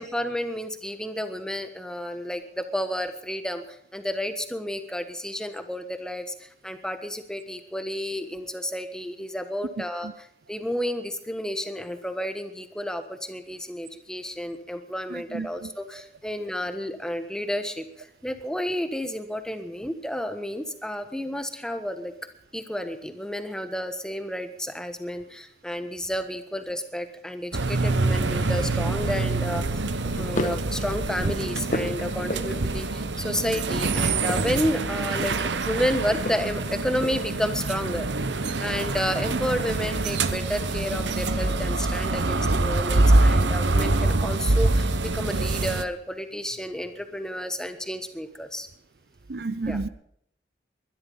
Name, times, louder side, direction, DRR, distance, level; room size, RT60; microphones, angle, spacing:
voice 1, 0.0-3.6 3.9-22.1 22.5-29.6 30.2-38.1 38.6-48.7 49.7-49.8, equal, 5° left, 1.3 m, -31 dB
voice 2, 15.1-15.7 49.3-49.9, right 3 dB, 60° right, 0.7 m, -31 dB
sound 1, 27.5-45.8, right 2 dB, 90° right, 1.0 m, -25 dB
sound 2, 30.0-30.7 31.2-32.8 34.1-35.6 36.2-37.4, left 1 dB, 45° left, 1.4 m, -34 dB
21.5 x 12.0 x 5.5 m
head